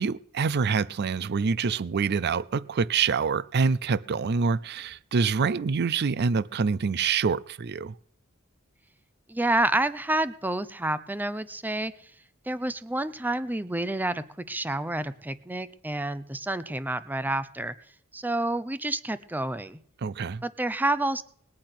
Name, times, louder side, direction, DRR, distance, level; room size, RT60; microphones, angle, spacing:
voice 1, 0.0-7.9 20.0-20.4, right 5 dB, 50° right, 0.5 m, -26 dB
voice 2, 9.3-11.9 12.5-17.7 18.1-19.8 20.4-21.2, right 1 dB, 10° right, 0.6 m, -29 dB
20.0 x 8.7 x 5.9 m
head